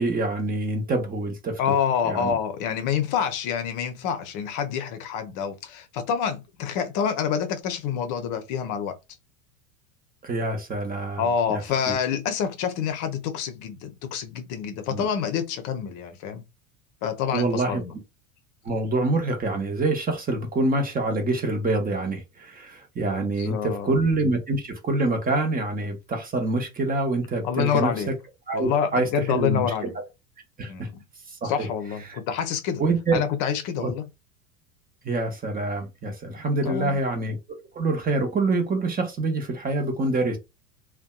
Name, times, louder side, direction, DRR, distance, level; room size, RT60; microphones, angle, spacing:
voice 1, 0.0-1.6 2.0-2.3 10.2-11.2 11.5-11.9 14.9-15.0 17.3-17.8 18.6-28.1 28.5-29.9 30.6-30.9 31.3-31.7 32.1-32.2 32.8-33.3 33.8-33.9 35.0-37.4 37.7-40.4, right 2 dB, 20° right, 0.7 m, -26 dB
voice 2, 1.6-9.0 11.2-16.4 17.0-17.9 23.2-23.9 27.4-28.1 28.5-30.0 30.7-31.0 31.4-32.8 33.1-34.0 36.6-37.0, left 7 dB, 45° left, 0.6 m, -27 dB
2.5 x 2.2 x 2.3 m
hypercardioid pair, 80°, 44 cm